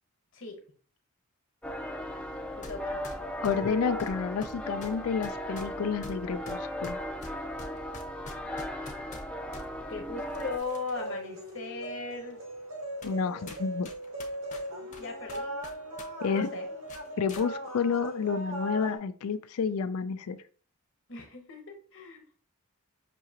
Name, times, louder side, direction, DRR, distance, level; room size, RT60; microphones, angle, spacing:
sound 1, 1.6-10.6, equal, 5° left, 0.4 m, -37 dB
voice 1, 2.6-3.0 9.9-12.4 15.0-15.5 16.3-16.7 21.1-22.2, left 3 dB, 60° left, 4 dB, 1.1 m, -38 dB
sound 2, 2.6-2.8 3.0-9.7 10.3-11.1 11.5-11.6 12.3-12.4 13.0-13.2 13.5-16.1 16.3-16.5 16.9-17.5, left 2 dB, 35° left, 0.7 m, -46 dB
voice 2, 3.4-7.1 13.0-13.9 16.2-16.5 17.2-20.4, left 6 dB, 85° left, 12 dB, 0.4 m, -30 dB
sound 3, 10.6-19.0, right 1 dB, 65° right, 1.1 m, -38 dB
6.1 x 2.8 x 2.8 m, 0.43 s
head